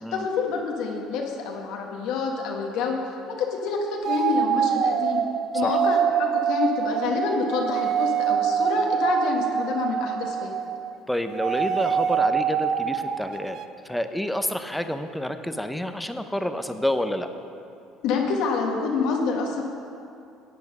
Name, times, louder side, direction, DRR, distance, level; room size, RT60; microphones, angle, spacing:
voice 1, 0.1-3.0 3.3-5.2 5.5-10.5 18.0-19.6, left 4 dB, 70° left, 0 dB, 1.4 m, -27 dB
sound 1, 4.0-11.0 11.3-13.7, right 7 dB, 55° right, 0.6 m, -25 dB
voice 2, 11.1-13.6 13.8-17.3, left 1 dB, 5° left, 8 dB, 0.7 m, -28 dB
10.5 x 8.4 x 5.4 m, 2.6 s
supercardioid pair, 75°, 0 cm